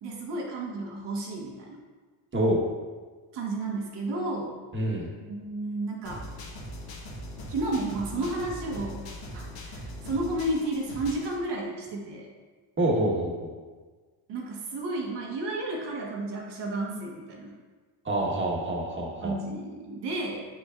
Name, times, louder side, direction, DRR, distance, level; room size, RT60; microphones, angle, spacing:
voice 1, 0.0-1.8 3.3-4.6 5.2-6.3 7.5-9.0 9.3-12.3 14.3-17.5 19.2-20.5, right 2 dB, 70° right, 0 dB, 1.5 m, -32 dB
voice 2, 2.3-2.6 4.7-5.1 12.8-13.5 18.0-19.3, right 1 dB, 30° right, -2 dB, 1.5 m, -26 dB
sound 1, 6.1-11.4, equal, 80° left, 1.5 m, -40 dB
7.9 x 5.9 x 2.5 m, 1.4 s
cardioid pair, 105°, 42 cm